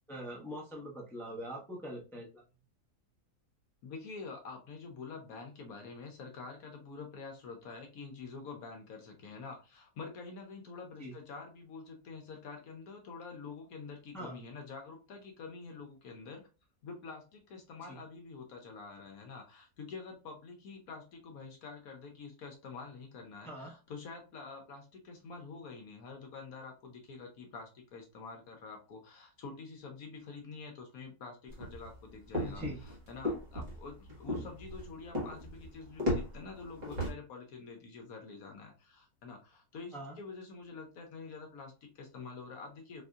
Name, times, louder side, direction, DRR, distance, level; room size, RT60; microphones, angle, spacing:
voice 1, 0.1-2.4 11.0-11.1 14.1-14.4 17.9-18.0 23.4-23.7 32.4-32.8 39.9-40.2, equal, ahead, -3 dB, 0.6 m, -43 dB
voice 2, 3.8-16.4 16.8-43.0, left 4 dB, 70° left, 2 dB, 1.1 m, -47 dB
sound 1, 31.5-37.1, left 1 dB, 30° right, 1.3 m, -36 dB
4.1 x 2.6 x 2.3 m, 0.31 s
omnidirectional pair, 1.7 m